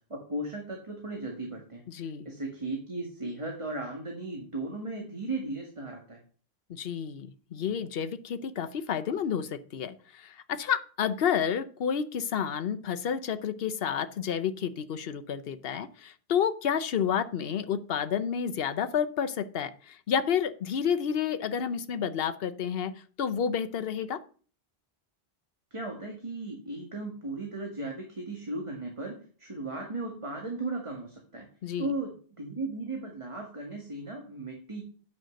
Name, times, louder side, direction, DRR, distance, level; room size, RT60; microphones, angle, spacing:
voice 1, 0.1-6.2 25.7-31.5 31.8-34.8, right 2 dB, 30° right, 1 dB, 1.8 m, -36 dB
voice 2, 1.9-2.3 6.7-22.9 23.2-24.2 31.6-31.9, left 8 dB, 70° left, 10 dB, 1.0 m, -30 dB
9.2 x 5.8 x 6.4 m, 0.42 s
omnidirectional pair, 1.0 m